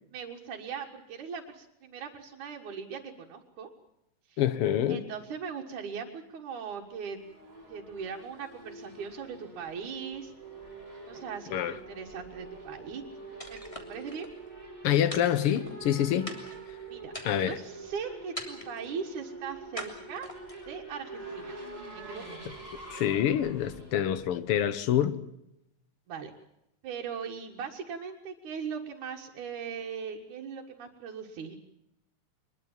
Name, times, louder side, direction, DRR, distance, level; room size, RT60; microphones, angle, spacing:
voice 1, 0.1-3.7 4.3-4.4 4.9-7.2 7.7-10.3 11.1-13.0 13.5-13.6 13.9-14.3 16.9-17.1 17.4-20.3 20.7-21.6 21.9-22.2 26.1-26.3 26.8-31.6, right 6 dB, 80° right, 3.2 m, -39 dB
voice 2, 4.4-5.0 11.5-11.7 14.8-16.4 17.3-17.6 22.9-25.2, left 10 dB, 60° left, 1.8 m, -26 dB
Race car auto racing / Accelerating revving vroom, 6.8-25.0, right 3 dB, 15° right, 5.4 m, -46 dB
sound 1, 13.4-14.3 15.1-15.9 16.3-16.7 17.1-17.7 18.4-18.9 19.8-20.7, equal, 10° left, 2.9 m, -42 dB
23.5 x 21.5 x 7.4 m
omnidirectional pair, 3.4 m